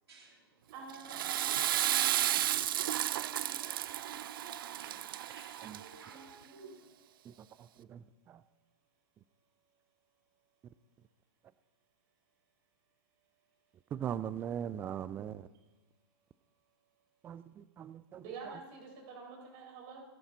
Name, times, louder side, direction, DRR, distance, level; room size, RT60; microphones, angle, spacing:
voice 1, 0.1-0.4 1.2-2.6 4.4-6.8, right 3 dB, 80° right, -2 dB, 3.0 m, -56 dB
voice 2, 0.7-4.6 6.0-6.7 18.1-20.0, right 4 dB, 40° right, -1 dB, 5.8 m, -51 dB
Water / Toilet flush, 0.9-6.1, right 12 dB, 60° right, 0.6 m, -33 dB
voice 3, 13.9-15.4 17.2-17.4 17.8-18.2, right 9 dB, 15° right, 16 dB, 0.4 m, -38 dB
20.5 x 10.5 x 4.0 m, 1.1 s
hypercardioid pair, 125°, 13 cm